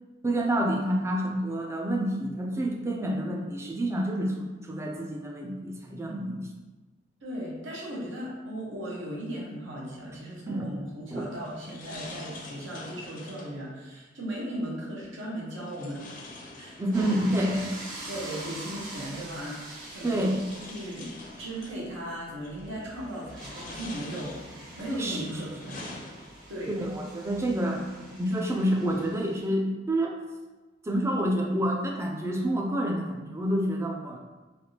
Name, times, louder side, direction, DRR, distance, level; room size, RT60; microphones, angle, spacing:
voice 1, 0.2-6.4 10.5-10.7 11.1-11.2 16.8-17.6 20.0-20.4 25.0-25.3 26.8-30.2 30.8-34.2, right 1 dB, 15° right, 1 dB, 0.3 m, -28 dB
voice 2, 7.2-16.2 16.5-17.2 17.5-17.6 18.1-20.3 20.7-21.1 21.4-24.3 24.8-26.0 26.5-26.8, right 1 dB, 80° right, -4 dB, 0.9 m, -37 dB
sound 1, 11.1-13.6 15.6-17.3 18.6-18.7 19.7-21.8 22.4-22.8 23.2-24.7 25.2-26.6, left 2 dB, 45° left, 0.5 m, -45 dB
sound 2, 16.9-29.5, right 1 dB, 45° right, 0.9 m, -44 dB
3.3 x 2.4 x 2.7 m, 1.2 s
head